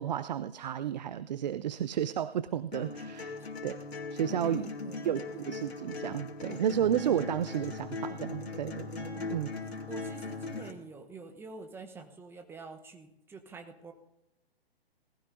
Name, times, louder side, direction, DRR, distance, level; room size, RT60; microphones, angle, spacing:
voice 1, 0.0-3.4 3.6-3.8 4.1-4.7 5.0-9.5, right 10 dB, 45° right, 15 dB, 0.5 m, -32 dB
sound 1, 2.7-10.7, left 3 dB, 75° left, 2.5 m, -39 dB
voice 2, 4.4-5.4 9.1-9.5 9.9-13.9, right 4 dB, 5° right, 6 dB, 0.9 m, -47 dB
19.5 x 14.5 x 2.6 m, 0.87 s
figure-of-eight pair, 130°, 31 cm